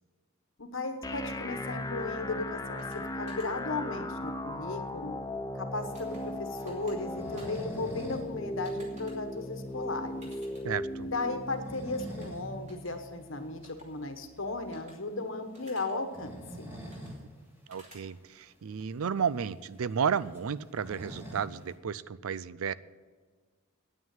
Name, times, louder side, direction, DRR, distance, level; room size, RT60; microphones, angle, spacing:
voice 1, 0.6-5.2 5.5-10.3 11.0-16.8, left 3 dB, 60° left, 7 dB, 1.2 m, -36 dB
sound 1, 1.0-15.0, left 1 dB, 15° left, 0.7 m, -38 dB
sound 2, 2.8-3.0 3.3-3.5 5.9-6.2 6.6-7.0 7.4-7.6 8.6-9.1 10.2-10.6 12.0-12.3 12.7-12.9 13.6-13.8 14.7-14.9 15.5-15.9 16.9-17.1 17.7-18.0, right 1 dB, 30° right, 2.7 m, -54 dB
sound 3, 5.9-8.3 8.6-8.7 9.1-9.2 9.7-9.8 11.3-12.5 12.9-13.0 14.6-14.8 16.0-17.3 17.6-17.7 18.0-18.1 18.8-18.9 19.1-21.7, right 1 dB, 10° right, 2.1 m, -45 dB
voice 2, 10.6-11.1 17.7-22.7, right 7 dB, 75° right, 17 dB, 0.4 m, -32 dB
9.4 x 9.1 x 9.0 m, 1.5 s
head